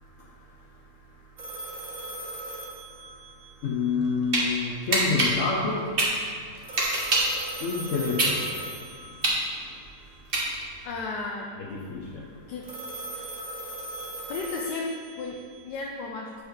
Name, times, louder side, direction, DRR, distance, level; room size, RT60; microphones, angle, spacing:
voice 1, 0.0-10.9 11.6-12.5 13.2-13.3 13.6-14.3, left 4 dB, 60° left, -3 dB, 1.0 m, -33 dB
sound 1, 1.4-3.7 6.6-9.5 12.6-15.6, right 1 dB, 60° right, 1.6 m, -38 dB
sound 2, 3.9-4.4 4.9-7.4 7.8-10.8, right 2 dB, 35° right, 1.4 m, -25 dB
voice 2, 10.8-11.5 12.5-12.7 14.3-16.3, left 3 dB, 90° left, 0 dB, 1.3 m, -34 dB
8.1 x 4.8 x 4.6 m, 2.2 s
omnidirectional pair, 1.7 m